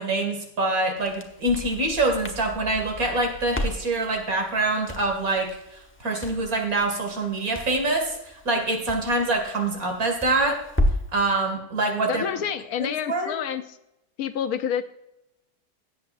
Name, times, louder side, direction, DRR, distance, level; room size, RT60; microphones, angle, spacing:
voice 1, 0.0-5.5 6.0-10.6 11.1-12.3 12.8-13.3, right 2 dB, 75° right, 3 dB, 2.7 m, -25 dB
Crackle, 1.0-11.2, left 1 dB, 10° left, 1.0 m, -33 dB
voice 2, 12.1-13.6 14.2-14.8, left 8 dB, 80° left, 10 dB, 1.2 m, -28 dB
17.5 x 8.2 x 2.6 m, 0.85 s
omnidirectional pair, 1.5 m